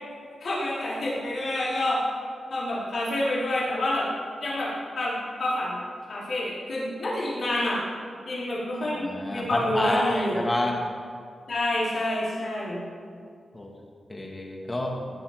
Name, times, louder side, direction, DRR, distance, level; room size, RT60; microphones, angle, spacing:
voice 1, 0.4-2.0 2.5-4.1 4.4-5.8 6.1-7.8 8.2-10.4 11.5-12.8, left 1 dB, 60° left, -8 dB, 4.6 m, -28 dB
voice 2, 8.8-10.8 13.5-13.7 14.1-15.0, left 1 dB, 25° left, 0 dB, 2.4 m, -29 dB
18.0 x 10.5 x 5.3 m, 2.2 s
wide cardioid pair, 115°, 0 cm